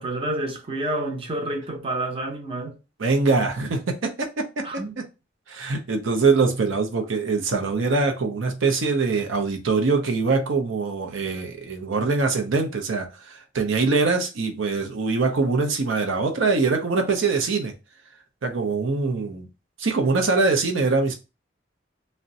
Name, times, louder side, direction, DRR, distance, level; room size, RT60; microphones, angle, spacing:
voice 1, 0.0-2.8 4.6-4.9, right 1 dB, 30° right, 0.6 m, -29 dB
voice 2, 3.0-4.6 5.5-17.7 18.4-19.5 19.8-21.1, right 4 dB, 85° right, 0.6 m, -23 dB
2.5 x 2.1 x 3.8 m
head